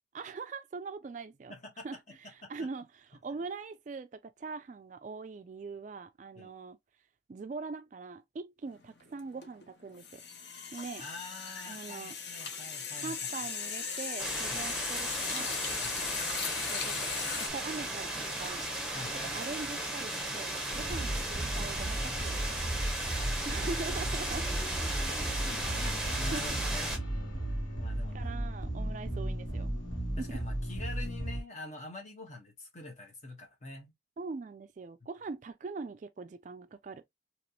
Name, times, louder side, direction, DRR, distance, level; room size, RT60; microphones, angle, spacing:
voice 1, 0.1-1.5 1.8-2.0 2.3-6.8 7.3-10.2 10.7-11.0 11.7-12.2 13.0-15.6 16.7-17.1 17.5-18.7 19.1-22.4 23.5-24.5 25.8-25.9 26.3-26.4 28.1-29.8 30.2-30.4 34.2-37.0, right 4 dB, 40° right, 0.3 m, -42 dB
voice 2, 1.5-2.2 2.4-2.5 6.3-6.5 11.0-13.1 14.5-14.7 15.8-16.1 18.9-19.4 20.9-21.0 23.2-23.7 24.9-27.0 27.5-28.3 30.2-33.9, left 2 dB, 40° left, 1.1 m, -46 dB
sound 1, 8.7-8.9 9.2-17.5, left 6 dB, 60° left, 0.7 m, -37 dB
sound 2, 14.2-27.0, right 1 dB, 5° right, 0.9 m, -36 dB
sound 3, 20.7-31.4, right 1 dB, 85° left, 1.6 m, -35 dB
3.1 x 2.9 x 2.7 m
head